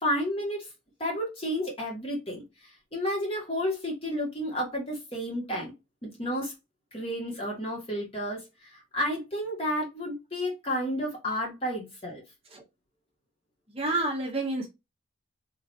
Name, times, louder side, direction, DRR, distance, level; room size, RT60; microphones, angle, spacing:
voice 1, 0.0-0.7 1.0-5.7 6.0-6.5 6.9-12.2, equal, 30° left, 1.4 m, -31 dB
voice 2, 13.7-14.7, right 2 dB, 30° right, 0.7 m, -29 dB
3.2 x 2.8 x 2.6 m
head